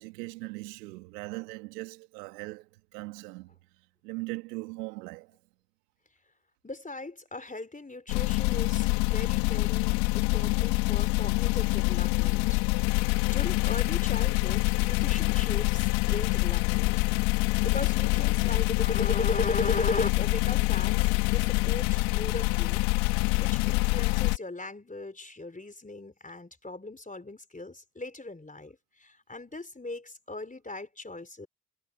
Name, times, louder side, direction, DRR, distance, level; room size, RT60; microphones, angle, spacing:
voice 1, 0.0-3.5 4.0-5.3, right 24 dB, 85° right, 2.5 m, -39 dB
voice 2, 6.6-12.6 12.9-17.0 17.6-22.8 23.4-31.5, left 2 dB, 15° left, 3.9 m, -37 dB
sound 1, 8.1-24.4, left 25 dB, 75° left, 2.1 m, -26 dB
hypercardioid pair, 50°, 47 cm